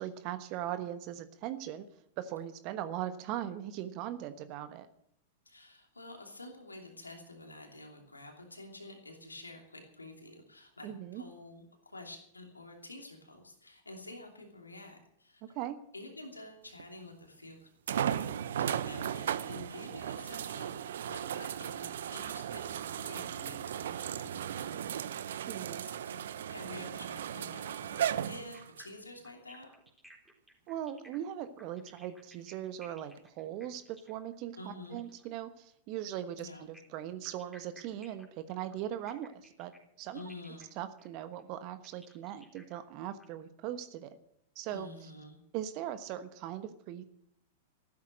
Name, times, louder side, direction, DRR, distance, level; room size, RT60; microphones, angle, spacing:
voice 1, 0.0-1.9 2.2-4.9 10.8-11.2 15.5-15.8 25.5-25.8 30.7-39.7 40.0-40.2 40.8-44.2 44.5-45.1 45.5-47.0, right 11 dB, 40° right, 10 dB, 1.2 m, -39 dB
voice 2, 5.4-15.6 15.9-26.2 26.5-29.7 34.6-35.0 36.4-36.7 40.1-40.7 44.7-45.4, left 2 dB, 85° left, 2 dB, 2.9 m, -49 dB
sound 1, 16.8-16.9 17.9-28.9 29.6-29.7 33.2-33.3, right 9 dB, 65° right, 0.6 m, -36 dB
sound 2, 28.5-35.3 36.5-43.2, equal, ahead, 3.9 m, -58 dB
14.5 x 12.5 x 6.4 m, 0.71 s
figure-of-eight pair, 95°, 0 cm